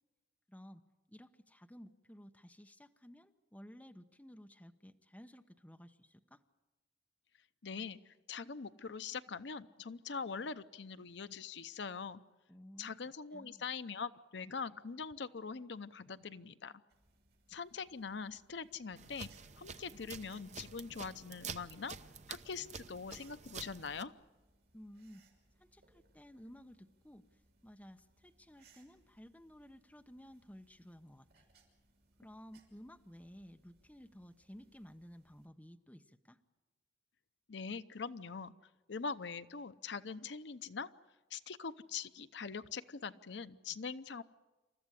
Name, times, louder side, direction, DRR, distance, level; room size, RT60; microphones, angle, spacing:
voice 1, 0.5-0.8 1.1-6.4 12.5-12.9 13.3-13.6 24.7-25.2 25.6-31.4 32.2-36.4, equal, 10° left, 6 dB, 0.9 m, -55 dB
voice 2, 7.6-12.2 12.8-16.7 17.5-19.3 19.6-22.0 22.3-24.1 37.5-38.5 38.9-40.9 41.3-44.2, left 5 dB, 65° left, 13 dB, 0.7 m, -43 dB
sound 1, 16.9-35.5, right 3 dB, 60° right, 6.0 m, -71 dB
sound 2, 19.0-24.0, right 6 dB, 40° right, 0.8 m, -49 dB
28.0 x 14.0 x 9.8 m, 1.2 s
head